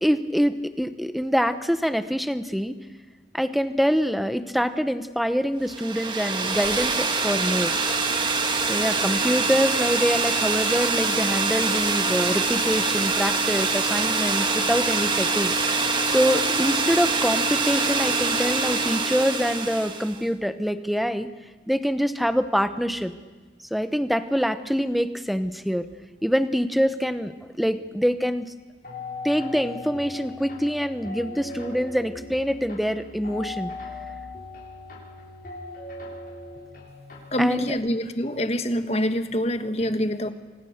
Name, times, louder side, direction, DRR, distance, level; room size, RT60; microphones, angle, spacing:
voice 1, 0.0-2.7 3.3-7.7 8.6-15.5 16.1-21.3 21.7-23.1 23.7-25.9 26.2-27.3 27.6-28.4 29.2-33.7 37.4-37.8, equal, ahead, 10 dB, 0.9 m, -25 dB
sound 1, 5.7-20.2, right 3 dB, 25° right, 1.8 m, -24 dB
sound 2, 28.8-37.6, left 3 dB, 50° left, 6.9 m, -39 dB
voice 2, 37.3-40.3, equal, 35° left, 9 dB, 1.5 m, -25 dB
29.5 x 25.0 x 6.7 m, 1.3 s
head